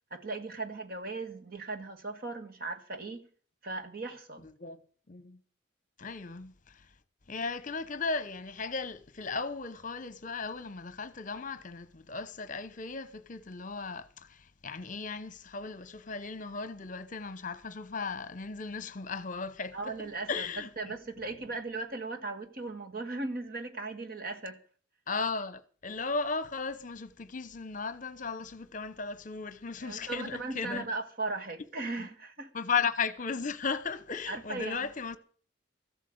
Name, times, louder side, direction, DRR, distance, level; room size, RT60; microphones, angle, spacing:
voice 1, 0.1-3.2 3.6-4.5 19.7-20.5 20.8-24.6 29.8-32.5 34.3-34.8, right 3 dB, 50° right, 1.6 m, -37 dB
voice 2, 5.1-5.4 6.0-6.9 7.3-20.0 20.3-21.0 25.1-30.8 32.0-32.1 32.5-35.2, left 4 dB, 40° left, 0.9 m, -36 dB
14.0 x 8.3 x 7.8 m
head